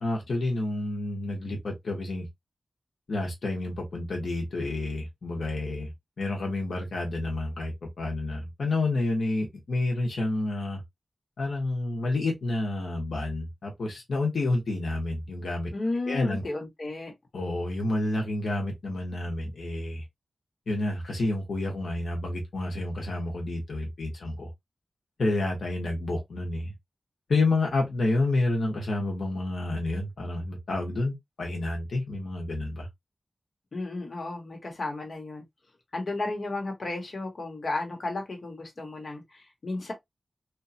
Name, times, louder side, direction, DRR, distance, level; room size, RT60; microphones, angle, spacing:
voice 1, 0.0-2.3 3.1-5.9 6.2-10.8 11.4-15.7 16.1-16.4 17.3-20.0 20.7-24.5 25.2-26.7 27.3-32.9, left 2 dB, 90° left, 0.8 m, -29 dB
voice 2, 15.7-17.1 33.7-35.4 35.9-39.9, left 2 dB, 55° left, 1.1 m, -33 dB
2.9 x 2.3 x 2.6 m
wide cardioid pair, 105°, 0 cm